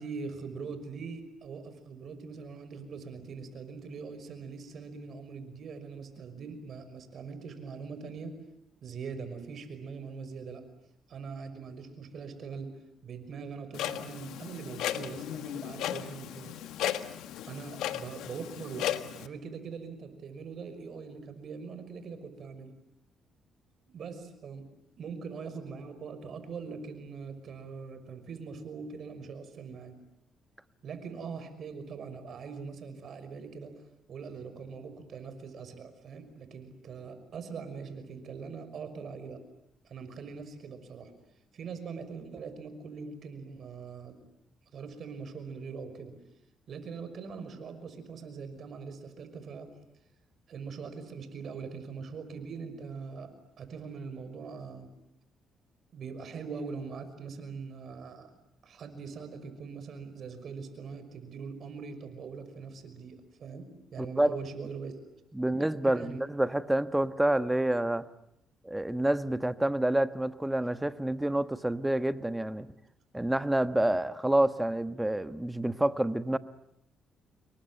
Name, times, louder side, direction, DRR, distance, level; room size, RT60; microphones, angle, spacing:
voice 1, 0.0-8.4 8.8-10.6 11.1-12.8 13.0-16.6 17.5-22.7 23.9-24.7 25.0-30.0 30.8-33.8 34.1-39.4 39.8-41.1 41.5-44.2 44.7-46.1 46.7-49.8 50.5-54.9 55.9-58.3 58.6-63.7 63.9-65.0 65.4-65.6 65.8-66.2, right 5 dB, 60° right, 5.8 m, -42 dB
Clock, 13.7-19.3, left 11 dB, 90° left, 1.4 m, -35 dB
voice 2, 64.0-64.3 65.3-68.1 68.6-72.7 73.1-76.4, right 1 dB, 10° right, 1.3 m, -28 dB
28.0 x 23.0 x 9.0 m
cardioid pair, 90°, 0 cm